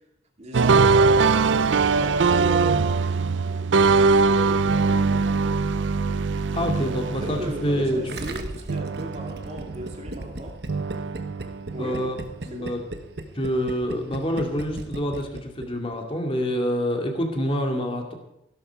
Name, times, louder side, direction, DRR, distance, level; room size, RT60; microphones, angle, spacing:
voice 1, 0.4-2.9 3.4-5.6 7.0-10.6 11.7-12.1 12.5-12.7, right 1 dB, 35° right, 1 dB, 2.4 m, -36 dB
sound 1, 0.5-8.4 8.7-10.2 10.7-12.3, right 4 dB, 90° right, 0.5 m, -22 dB
voice 2, 6.5-8.0 11.8-12.1 12.5-12.8 13.3-18.1, equal, 30° left, 3 dB, 2.4 m, -26 dB
Gurgling, 8.1-15.7 15.9-16.0, right 2 dB, 60° right, 1.3 m, -36 dB
16.0 x 12.5 x 4.7 m, 0.85 s
head